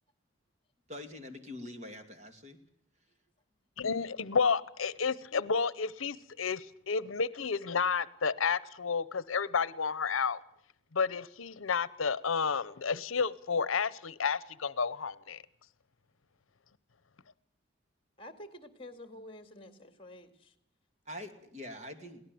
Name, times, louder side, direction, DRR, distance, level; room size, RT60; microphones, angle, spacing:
voice 1, 0.9-2.6 21.1-22.2, left 1 dB, 35° right, 7 dB, 2.5 m, -44 dB
voice 2, 3.8-10.4 10.9-15.4, left 5 dB, 80° left, 19 dB, 0.8 m, -31 dB
voice 3, 18.2-20.5, left 1 dB, 25° left, 9 dB, 2.3 m, -49 dB
22.5 x 18.0 x 7.7 m, 0.71 s
head